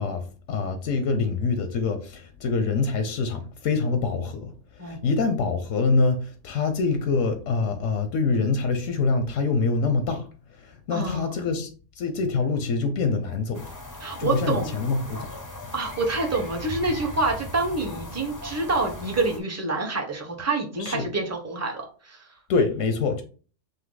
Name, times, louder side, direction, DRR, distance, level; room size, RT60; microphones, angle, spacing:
voice 1, 0.0-11.7 12.0-13.7 14.2-15.3 20.8-21.1 22.5-23.2, left 4 dB, 85° left, 1.0 m, -25 dB
voice 2, 10.9-11.3 14.0-14.7 15.7-22.3, right 3 dB, 15° right, 0.7 m, -27 dB
sound 1, 13.5-19.4, left 1 dB, 25° left, 0.4 m, -38 dB
5.5 x 2.0 x 3.8 m
omnidirectional pair, 1.3 m